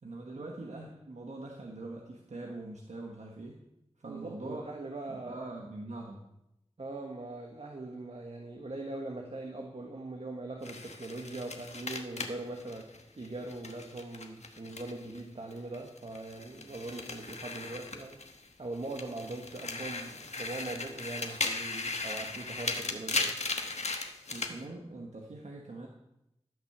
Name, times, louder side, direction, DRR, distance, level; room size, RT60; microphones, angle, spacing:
voice 1, 0.0-3.6 4.0-4.6 5.1-6.2 24.3-25.9, right 2 dB, 90° right, 0 dB, 1.3 m, -43 dB
voice 2, 4.0-5.4 6.8-18.2 18.6-23.4, right 2 dB, 60° right, 2 dB, 1.4 m, -41 dB
sound 1, 10.6-15.2 15.5-18.5 18.8-24.5, left 3 dB, 75° left, 1.1 m, -37 dB
14.5 x 6.1 x 6.7 m, 0.86 s
wide cardioid pair, 55°, 12 cm